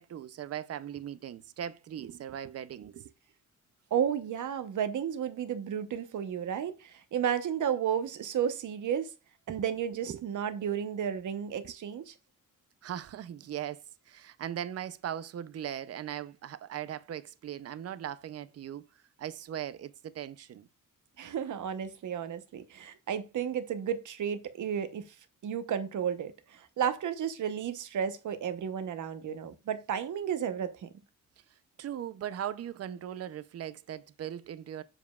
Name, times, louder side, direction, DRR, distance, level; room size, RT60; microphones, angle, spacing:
voice 1, 0.0-3.1 9.5-9.6 10.1-10.3 11.6-11.7 12.8-18.9 19.2-20.7 31.8-34.8, right 10 dB, 50° right, 0.5 m, -39 dB
voice 2, 3.9-9.1 9.5-12.1 21.2-25.1 25.4-30.9, right 8 dB, 70° right, 0.9 m, -33 dB
7.2 x 7.1 x 2.3 m
wide cardioid pair, 165°, 31 cm